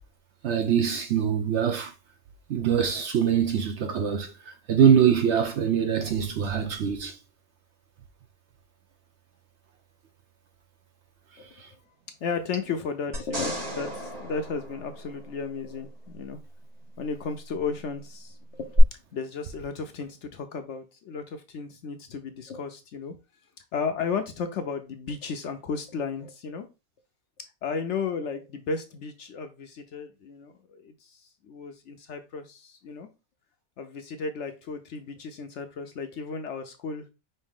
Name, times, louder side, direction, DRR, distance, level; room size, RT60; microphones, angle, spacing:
voice 1, 0.4-1.9 2.5-7.2 11.6-11.7, right 8 dB, 60° right, 0.8 m, -23 dB
voice 2, 12.2-16.4 17.0-18.8 19.1-23.1 23.7-26.7 27.6-33.1 33.8-37.1, left 5 dB, 65° left, 0.8 m, -34 dB
sound 1, 13.1-15.6 18.8-18.9, right 2 dB, 80° right, 3.5 m, -33 dB
5.3 x 2.7 x 3.6 m
omnidirectional pair, 1.5 m